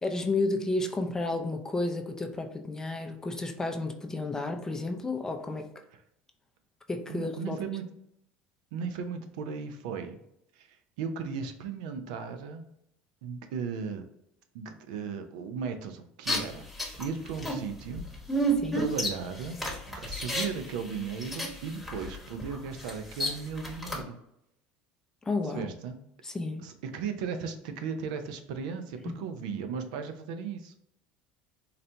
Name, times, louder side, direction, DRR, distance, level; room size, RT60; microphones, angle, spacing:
voice 1, 0.0-5.7 6.9-7.6 18.6-18.9 25.3-25.7 26.2-26.6 29.1-29.2, left 2 dB, 15° left, 5 dB, 0.4 m, -31 dB
voice 2, 7.1-7.8 8.7-10.2 10.6-12.7 13.2-14.1 14.5-18.5 18.7-19.6 19.9-24.2 25.5-26.0 26.6-30.8, right 6 dB, 80° right, 7 dB, 0.5 m, -36 dB
sound 1, 16.3-24.0, right 1 dB, 5° right, 1.0 m, -32 dB
4.0 x 2.2 x 2.7 m, 0.76 s
supercardioid pair, 110°, 4 cm